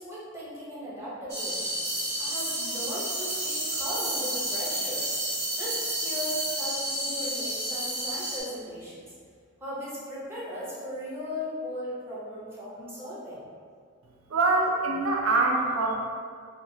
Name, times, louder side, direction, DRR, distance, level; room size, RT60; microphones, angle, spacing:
voice 1, 0.0-1.7 2.2-5.0 5.5-9.0 9.6-13.4, equal, 10° right, -8 dB, 0.7 m, -37 dB
sound 1, 1.3-8.4, right 1 dB, 55° right, 0.8 m, -31 dB
voice 2, 14.3-16.0, right 3 dB, 80° right, 1 dB, 0.4 m, -24 dB
2.9 x 2.9 x 2.6 m, 2.1 s
head